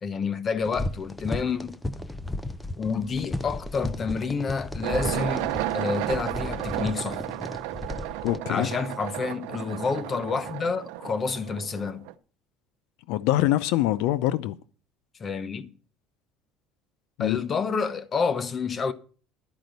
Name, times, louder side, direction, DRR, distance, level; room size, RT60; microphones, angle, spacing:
voice 1, 0.0-1.7 2.8-7.2 8.5-12.0 15.2-15.7 17.2-18.9, left 5 dB, 30° left, 1.0 m, -29 dB
sound 1, 0.6-8.4, left 1 dB, 10° left, 0.7 m, -35 dB
sound 2, 4.8-12.1, right 15 dB, 85° right, 0.7 m, -33 dB
voice 2, 8.2-8.7 13.1-14.6 17.2-17.4, left 15 dB, 80° left, 0.5 m, -24 dB
12.5 x 5.1 x 8.0 m
cardioid pair, 115°, 0 cm